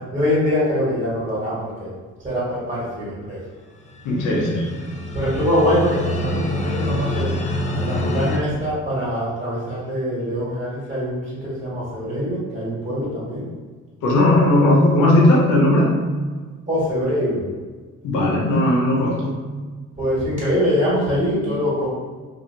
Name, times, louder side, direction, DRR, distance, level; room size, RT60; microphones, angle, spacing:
voice 1, 0.1-1.9 2.2-3.4 5.1-7.3 7.8-13.5 16.7-17.4 20.0-21.9, equal, 25° right, -9 dB, 1.4 m, -23 dB
sound 1, 3.9-8.4, left 1 dB, 25° left, 0.4 m, -26 dB
voice 2, 4.0-4.7 14.0-15.9 18.0-19.2, left 1 dB, 85° left, -2 dB, 0.8 m, -17 dB
2.7 x 2.5 x 2.7 m, 1.4 s
cardioid pair, 90°, 30 cm